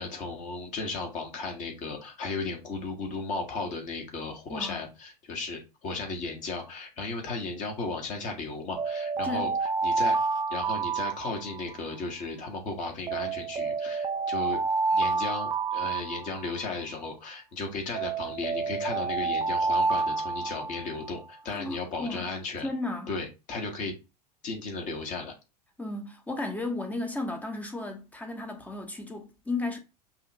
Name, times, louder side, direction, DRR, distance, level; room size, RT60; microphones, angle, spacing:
voice 1, 0.0-9.5 9.8-10.2 10.5-14.6 14.9-22.7 23.1-23.9 24.4-25.3, left 3 dB, 40° left, 1.5 m, -35 dB
voice 2, 4.5-4.8 9.2-9.5 21.5-22.4 22.6-23.1 25.8-29.8, left 2 dB, 5° left, 0.9 m, -34 dB
sound 1, 8.8-11.9 13.1-16.8 17.9-21.2, right 4 dB, 20° right, 0.5 m, -29 dB
5.6 x 2.5 x 2.9 m
figure-of-eight pair, 85°, 21 cm